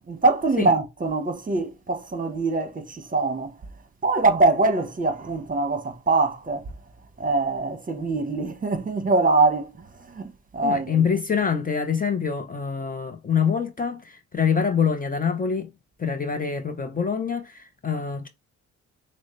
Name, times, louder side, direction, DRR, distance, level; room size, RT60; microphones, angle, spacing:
voice 1, 0.1-3.5 4.0-6.6 7.2-9.8 10.1-11.0, right 3 dB, 25° right, 1.1 m, -23 dB
voice 2, 10.6-15.7 16.0-18.3, left 6 dB, 30° left, 0.7 m, -25 dB
6.1 x 2.1 x 3.2 m
cardioid pair, 85°, 30 cm